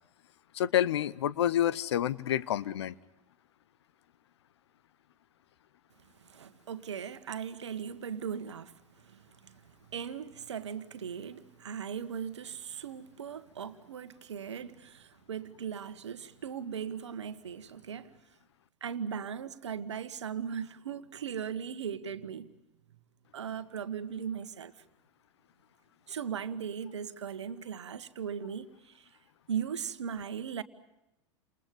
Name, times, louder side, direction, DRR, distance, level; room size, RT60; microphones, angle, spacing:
voice 1, 0.5-2.9, left 11 dB, 60° left, 1.0 m, -28 dB
voice 2, 6.2-8.7 9.1-9.5 9.9-18.1 18.8-22.5 23.3-24.7 26.1-29.0 29.5-30.6, right 7 dB, 70° right, 1.6 m, -38 dB
30.0 x 28.0 x 5.2 m
figure-of-eight pair, 90°, 16 cm